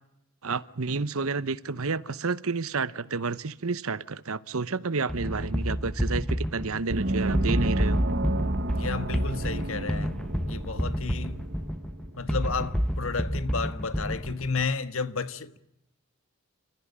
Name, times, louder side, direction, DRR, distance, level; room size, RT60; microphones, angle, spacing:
voice 1, 0.4-8.0, right 4 dB, 75° right, 0.9 m, -30 dB
sound 1, 5.1-14.7, equal, 5° left, 1.2 m, -29 dB
Gong, 6.9-12.1, right 1 dB, 50° right, 1.4 m, -31 dB
voice 2, 8.7-10.1 10.5-11.4 12.2-15.6, left 4 dB, 65° left, 1.5 m, -32 dB
28.5 x 15.0 x 9.9 m
head